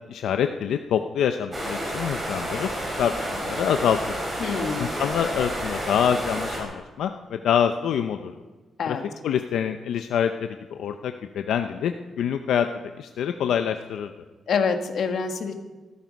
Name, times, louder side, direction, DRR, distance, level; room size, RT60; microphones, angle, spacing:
voice 1, 0.1-2.7 3.0-4.2 4.8-8.4 8.9-9.0 9.2-12.7 13.0-14.1, left 8 dB, 85° left, 7 dB, 0.7 m, -26 dB
sound 1, 1.5-6.6, right 1 dB, 15° right, 4.6 m, -30 dB
voice 2, 4.4-4.9 8.8-9.0 14.5-15.5, left 5 dB, 55° left, 6 dB, 1.7 m, -26 dB
18.5 x 14.0 x 5.3 m, 1.3 s
wide cardioid pair, 170°, 0 cm